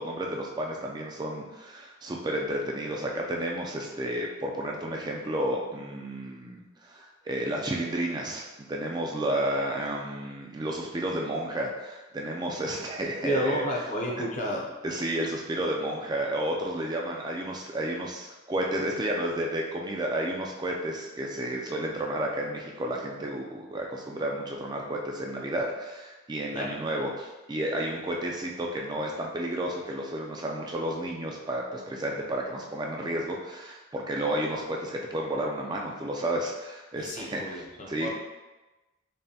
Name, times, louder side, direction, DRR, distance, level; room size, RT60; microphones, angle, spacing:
voice 1, 0.0-13.6 14.8-38.1, right 1 dB, 20° right, 0 dB, 0.3 m, -31 dB
voice 2, 13.2-14.7 26.5-26.7 37.0-38.1, equal, 40° left, -1 dB, 0.6 m, -31 dB
5.3 x 2.2 x 2.7 m, 1.1 s
head